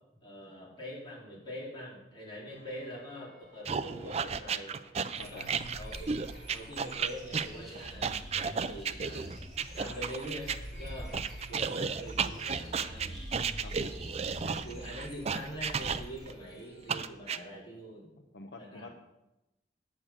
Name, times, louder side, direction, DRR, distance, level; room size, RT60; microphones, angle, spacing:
voice 1, 0.2-4.8 5.2-6.2 6.5-9.4 9.7-11.2 11.5-13.2 14.4-18.1 18.6-18.9, equal, 25° left, -6 dB, 4.1 m, -44 dB
sound 1, 2.5-16.9, equal, 55° left, 3.2 m, -61 dB
sound 2, 3.7-10.6 11.1-16.3 16.9-17.4, right 6 dB, 35° right, 0.4 m, -33 dB
voice 2, 5.2-5.5 9.8-10.0 13.6-13.9 18.3-18.9, left 3 dB, 70° left, 4 dB, 0.8 m, -47 dB
sound 3, 5.2-17.1, equal, ahead, 4.3 m, -45 dB
9.5 x 6.6 x 7.4 m, 0.95 s
head